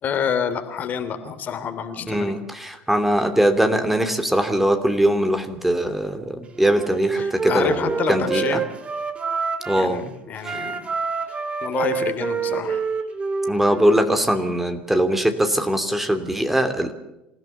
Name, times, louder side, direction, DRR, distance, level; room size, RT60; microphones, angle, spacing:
voice 1, 0.0-2.4 7.2-8.6 9.8-10.9 11.6-12.8, left 7 dB, 45° left, 8 dB, 3.0 m, -27 dB
voice 2, 2.1-8.6 9.7-10.0 10.4-10.6 13.5-16.9, right 1 dB, 5° right, 7 dB, 2.9 m, -21 dB
Wind instrument woodwind instrument, 6.5-9.9 10.4-14.0, right 5 dB, 30° right, 2.5 m, -27 dB
27.0 x 16.5 x 7.2 m, 0.91 s
hypercardioid pair, 70°, 4 cm